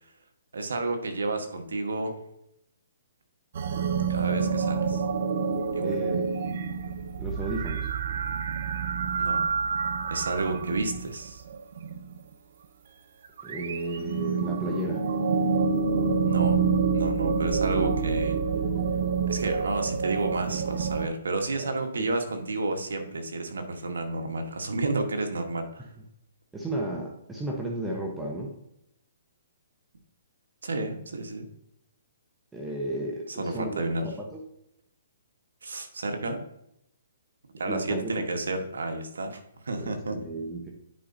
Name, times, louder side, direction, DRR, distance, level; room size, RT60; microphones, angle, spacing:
voice 1, 0.5-2.2 4.1-5.0 5.7-6.0 9.2-9.4 10.1-11.4 16.3-16.6 16.9-18.4 19.3-25.8 30.6-31.5 33.3-34.1 35.6-36.4 37.6-40.2, right 2 dB, 85° right, 5 dB, 1.3 m, -31 dB
sound 1, 3.6-12.2 13.3-21.1, right 5 dB, 60° right, 0.6 m, -27 dB
voice 2, 5.8-6.2 6.5-6.6 7.2-7.9 13.4-15.0 21.6-22.1 26.5-28.6 32.5-34.4 37.7-38.1 39.8-40.7, right 1 dB, 10° right, -1 dB, 0.9 m, -33 dB
10.0 x 4.8 x 2.7 m, 0.79 s
hypercardioid pair, 155°, 0 cm